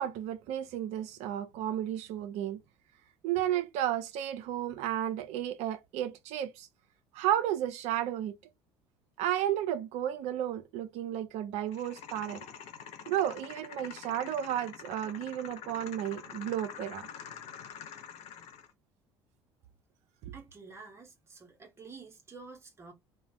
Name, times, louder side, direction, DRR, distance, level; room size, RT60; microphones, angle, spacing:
voice 1, 0.0-2.6 3.2-6.7 7.1-8.3 9.2-12.4 13.1-17.1 20.2-20.3, right 11 dB, 50° right, 0.4 m, -33 dB
sound 1, 11.7-18.7, left 8 dB, 50° left, 0.6 m, -46 dB
voice 2, 20.3-22.9, right 4 dB, 20° right, 0.8 m, -49 dB
2.4 x 2.1 x 3.3 m
figure-of-eight pair, 55°, 14 cm